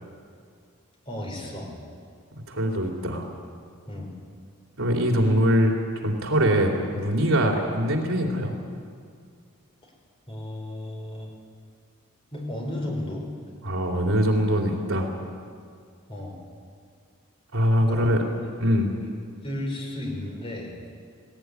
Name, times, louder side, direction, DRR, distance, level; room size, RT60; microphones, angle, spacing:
voice 1, 1.1-1.8 3.9-4.1 9.8-9.9 10.3-11.3 12.3-13.3 16.1-16.5 17.8-18.1 19.4-20.7, left 1 dB, 25° left, 0 dB, 4.5 m, -34 dB
voice 2, 2.5-3.3 4.8-5.7 6.0-8.5 13.6-15.1 17.5-18.2 18.6-18.9, equal, 75° right, 1 dB, 3.4 m, -22 dB
18.5 x 18.0 x 9.6 m, 2.2 s
head